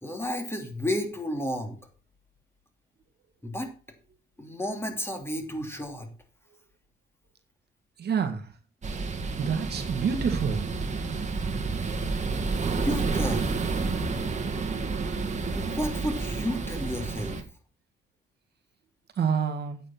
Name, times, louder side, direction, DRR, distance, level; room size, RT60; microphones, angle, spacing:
voice 1, 0.0-1.8 3.4-3.7 4.4-6.1 12.8-13.5 15.5-17.4, left 1 dB, 10° left, 4 dB, 2.9 m, -32 dB
voice 2, 8.0-8.5 9.4-10.7 19.2-19.8, right 6 dB, 55° right, 5 dB, 1.7 m, -27 dB
sound 1, 8.8-17.4, right 4 dB, 35° right, 1.9 m, -30 dB
9.0 x 7.4 x 5.8 m, 0.36 s
cardioid pair, 90°, 20 cm